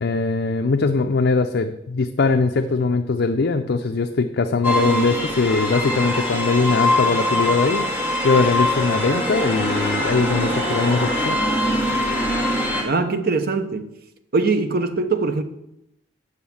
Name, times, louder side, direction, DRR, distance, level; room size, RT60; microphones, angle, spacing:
voice 1, 0.0-11.4, left 4 dB, 60° left, 0.5 m, -21 dB
sound 1, 4.6-12.8, left 1 dB, 10° right, 1.9 m, -22 dB
voice 2, 12.8-13.9 14.3-15.4, right 3 dB, 50° right, 0.8 m, -22 dB
8.2 x 6.2 x 7.1 m
head